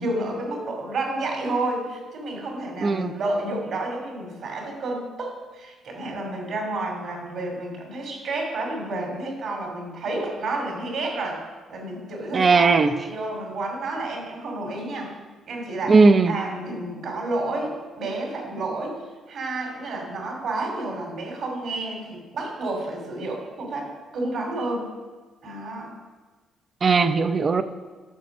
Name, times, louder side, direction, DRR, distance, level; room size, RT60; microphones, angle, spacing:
voice 1, 0.0-11.4 11.7-12.8 13.0-15.1 15.5-16.0 16.3-18.9 19.3-24.9 25.4-25.9, right 2 dB, 70° right, 0 dB, 2.6 m, -30 dB
voice 2, 2.8-3.1 12.3-13.0 15.9-16.4 26.8-27.6, right 4 dB, 40° right, 10 dB, 0.6 m, -17 dB
12.0 x 4.2 x 6.0 m, 1.3 s
cardioid pair, 90°, 0 cm